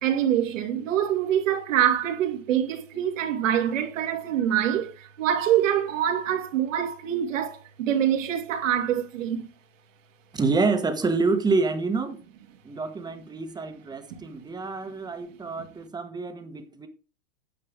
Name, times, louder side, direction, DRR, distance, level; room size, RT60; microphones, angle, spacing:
voice 1, 0.0-9.5 14.1-14.2, right 10 dB, 80° right, 2.5 m, -25 dB
voice 2, 10.3-12.2 12.6-16.9, right 3 dB, 10° right, 1.2 m, -27 dB
9.7 x 7.5 x 3.6 m
supercardioid pair, 140°, 38 cm